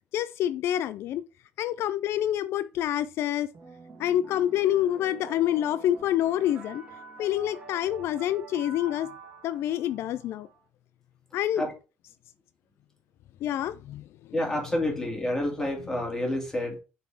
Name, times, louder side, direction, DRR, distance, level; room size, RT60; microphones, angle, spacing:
voice 1, 0.1-1.2 1.6-3.5 4.0-6.8 7.2-9.1 9.4-10.5 11.3-11.6 13.4-14.0, left 12 dB, 70° left, 0.3 m, -27 dB
sound 1, 3.5-10.6, right 3 dB, 30° right, 2.5 m, -47 dB
voice 2, 14.3-16.8, left 1 dB, 10° left, 2.3 m, -29 dB
6.6 x 4.2 x 4.5 m
cardioid pair, 140°, 4 cm